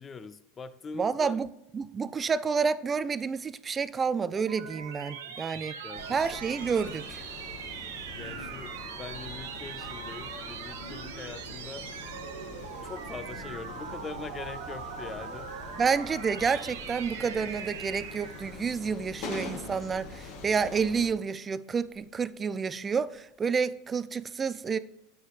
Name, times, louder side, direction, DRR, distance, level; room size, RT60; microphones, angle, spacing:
voice 1, 0.0-1.4 5.3-6.2 7.7-7.9 8.2-11.9 12.8-15.5, left 5 dB, 25° left, 0.6 m, -43 dB
voice 2, 0.9-1.5 1.7-5.7 6.1-7.2 15.8-24.8, right 5 dB, 25° right, 0.4 m, -29 dB
sound 1, 4.0-18.6, right 7 dB, 70° right, 0.7 m, -41 dB
Respiratory sounds, 4.5-5.0 5.3-6.1 6.4-7.4 8.1-8.9 12.5-13.1 13.7-14.8 16.3-17.0 18.0-18.7 19.2-20.0 21.8-22.7 23.1-23.3, left 3 dB, 80° left, 0.9 m, -54 dB
sound 2, 5.9-21.1, left 3 dB, 60° left, 1.5 m, -44 dB
9.6 x 6.4 x 3.2 m
figure-of-eight pair, 80°, 0 cm